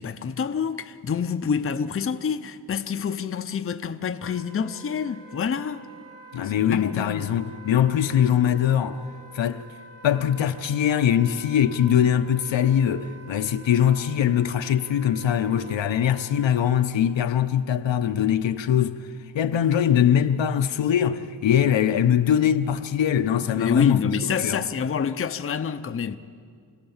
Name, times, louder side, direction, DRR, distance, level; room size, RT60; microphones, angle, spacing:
voice 1, 0.0-5.8 6.4-7.3 23.5-26.2, left 6 dB, 30° left, 0.6 m, -27 dB
Wind instrument woodwind instrument, 4.2-16.9, right 5 dB, 80° right, 4.7 m, -47 dB
voice 2, 6.3-9.0 9.3-9.6 10.0-19.0 19.3-24.0 24.4-24.6, left 9 dB, 85° left, 0.9 m, -22 dB
27.5 x 17.5 x 7.2 m
wide cardioid pair, 160°, 44 cm